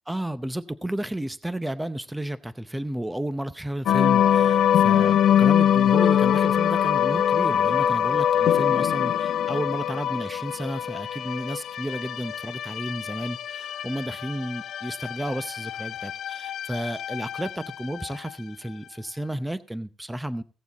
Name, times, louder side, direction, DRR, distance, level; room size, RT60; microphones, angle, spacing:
voice 1, 0.1-20.4, right 1 dB, 10° right, 0.6 m, -32 dB
sound 1, 3.9-18.3, left 10 dB, 70° left, 0.6 m, -23 dB
16.5 x 7.1 x 4.0 m
cardioid pair, 90°, 0 cm